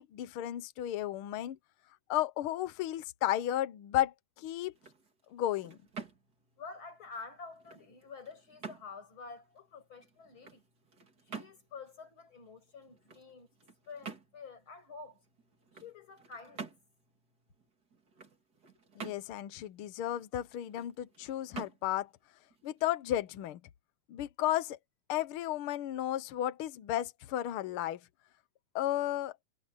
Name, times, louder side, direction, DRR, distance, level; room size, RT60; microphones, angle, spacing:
voice 1, 0.0-1.6 2.1-4.7 5.3-5.8 19.0-22.1 22.6-23.6 24.1-24.8 25.1-28.0 28.7-29.3, left 13 dB, 75° left, 1.2 m, -33 dB
sound 1, 4.6-23.5, right 5 dB, 30° right, 3.1 m, -50 dB
voice 2, 6.6-10.6 11.2-13.5 13.9-15.2 15.7-16.7, left 4 dB, 40° left, 6.9 m, -49 dB
omnidirectional pair, 3.5 m